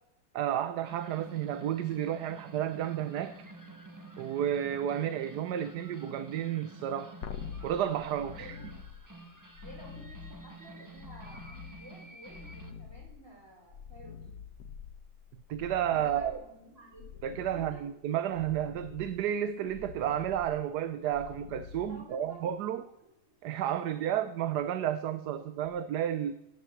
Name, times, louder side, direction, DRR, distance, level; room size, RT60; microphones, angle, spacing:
voice 1, 0.3-3.4 4.2-7.2 7.6-8.5 15.5-16.4 17.2-22.8 23.4-26.3, right 10 dB, 85° right, 1.3 m, -32 dB
sound 1, 0.8-12.7, right 2 dB, 15° right, 1.1 m, -49 dB
sound 2, 7.2-22.5 25.7-25.8, left 7 dB, 80° left, 1.6 m, -47 dB
voice 2, 8.3-8.7 9.6-14.3 15.9-17.2 17.5-17.9 21.9-22.4 22.8-23.1 25.3-25.7, right 1 dB, 50° right, 4.8 m, -52 dB
18.0 x 7.5 x 7.2 m
omnidirectional pair, 1.7 m